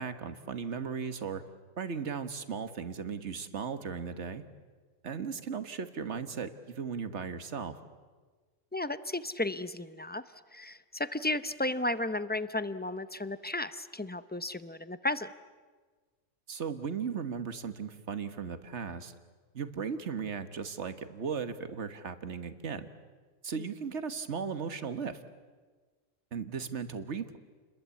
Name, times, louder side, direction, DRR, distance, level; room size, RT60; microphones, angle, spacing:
voice 1, 0.0-1.4 1.8-4.4 5.0-7.8 16.5-19.1 19.5-22.9 23.4-25.2 26.3-27.4, right 6 dB, 55° right, 10 dB, 1.6 m, -36 dB
voice 2, 8.7-10.2 10.5-15.3 23.6-23.7, left 2 dB, 15° left, 13 dB, 0.4 m, -34 dB
29.5 x 21.5 x 8.4 m, 1.4 s
omnidirectional pair, 1.4 m